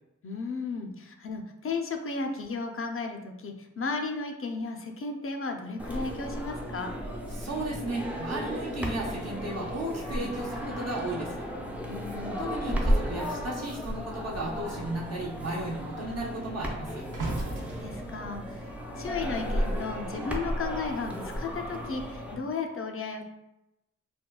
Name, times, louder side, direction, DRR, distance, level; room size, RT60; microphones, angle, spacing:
voice 1, 0.2-6.9 11.9-12.4 17.6-18.6 19.0-23.2, left 4 dB, 45° left, 4 dB, 0.5 m, -34 dB
sound 1, 5.8-22.4, equal, 5° right, 0.5 m, -34 dB
voice 2, 7.3-11.5 12.4-17.0, right 1 dB, 55° right, -3 dB, 0.7 m, -34 dB
sound 2, 10.9-13.6 13.9-14.3 14.6-19.9 20.7-20.9, right 2 dB, 90° right, 0.7 m, -41 dB
4.4 x 2.2 x 2.3 m, 0.90 s
wide cardioid pair, 95°, 31 cm